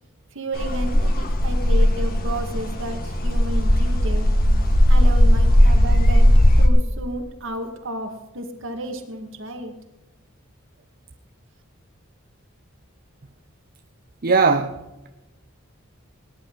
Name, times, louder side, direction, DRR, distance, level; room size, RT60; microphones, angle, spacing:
voice 1, 0.3-4.3 4.9-6.3 6.6-9.7, right 1 dB, 65° right, 2.2 m, -32 dB
sound 1, 0.6-6.7, equal, 45° left, 1.7 m, -17 dB
voice 2, 14.2-15.1, right 4 dB, 45° right, 0.7 m, -20 dB
19.5 x 10.5 x 4.0 m
head